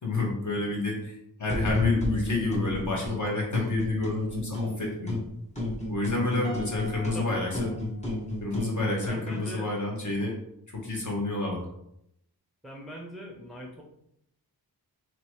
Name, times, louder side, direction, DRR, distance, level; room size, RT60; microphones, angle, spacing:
voice 1, 0.0-5.2 5.9-7.7 8.4-10.3 10.7-11.6, left 2 dB, 50° left, -2 dB, 1.4 m, -30 dB
sound 1, 1.5-3.2 3.5-5.3 5.6-9.3, left 2 dB, 15° left, 1.0 m, -31 dB
Piano, 6.4-8.7, right 1 dB, 75° left, 1.1 m, -45 dB
voice 2, 6.8-7.8 8.9-9.7 12.6-13.8, equal, ahead, -1 dB, 0.6 m, -42 dB
3.0 x 3.0 x 4.6 m, 0.76 s
wide cardioid pair, 105°, 39 cm